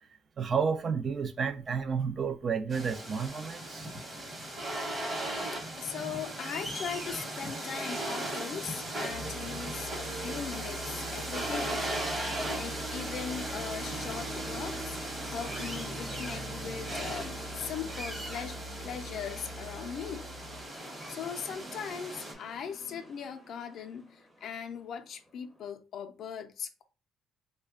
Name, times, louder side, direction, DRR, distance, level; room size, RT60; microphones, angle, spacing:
voice 1, 0.4-3.9, right 6 dB, 40° right, 0.4 m, -31 dB
sound 1, 2.7-22.3, right 1 dB, 25° right, 1.0 m, -38 dB
voice 2, 5.8-20.3 21.1-26.8, left 7 dB, 60° left, 0.5 m, -40 dB
Musical instrument, 9.1-20.7, right 1 dB, 75° right, 0.7 m, -43 dB
sound 2, 12.3-25.7, right 1 dB, 5° right, 0.7 m, -49 dB
3.2 x 2.2 x 3.6 m
cardioid pair, 130°, 0 cm